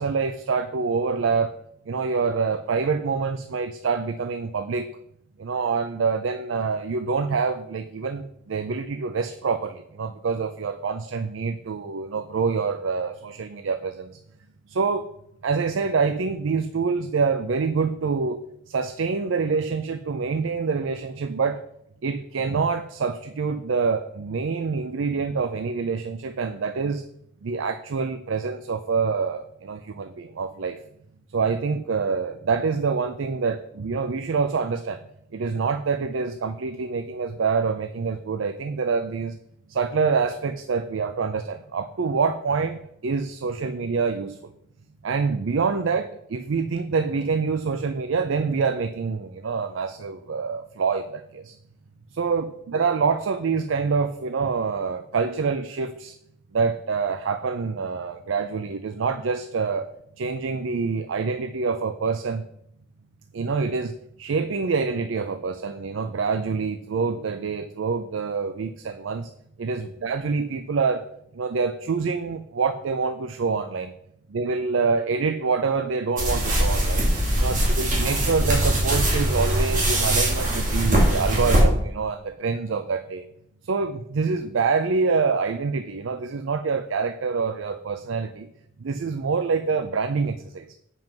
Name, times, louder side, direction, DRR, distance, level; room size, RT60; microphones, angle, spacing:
voice 1, 0.0-1.5 1.9-4.9 5.4-14.1 14.7-15.1 15.4-18.4 18.7-21.6 22.0-27.0 27.4-30.8 31.3-35.0 35.3-39.3 39.7-44.4 45.0-51.5 52.1-56.1 56.5-59.9 60.2-62.4 63.3-69.3 69.6-71.1 71.3-73.9 74.3-77.0 77.4-83.2 83.6-88.5 88.8-90.7, right 5 dB, 85° right, 10 dB, 0.5 m, -26 dB
sound 1, 76.2-81.6, right 1 dB, 40° right, 2.4 m, -22 dB
7.5 x 5.4 x 5.9 m, 0.75 s
head